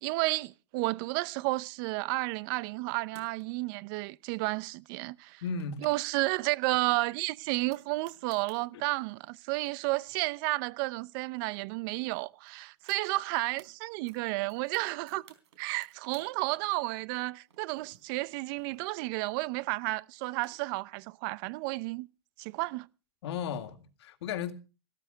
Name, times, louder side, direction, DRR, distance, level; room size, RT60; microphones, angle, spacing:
voice 1, 0.0-5.4 5.8-15.3 15.6-22.1 22.4-22.9, right 22 dB, 50° right, 0.8 m, -32 dB
sound 1, 3.0-3.7 5.2-6.0 6.3-6.4 6.7-8.6 9.3-9.4 9.6-11.4 11.7-11.8 12.1-13.7 14.1-16.3 16.6-19.2 20.0-20.9, right 8 dB, 80° right, 4.0 m, -60 dB
voice 2, 5.4-5.9 8.7-8.8 23.2-24.5, left 6 dB, 70° left, 2.2 m, -35 dB
15.0 x 13.5 x 5.1 m
hypercardioid pair, 130°, 14 cm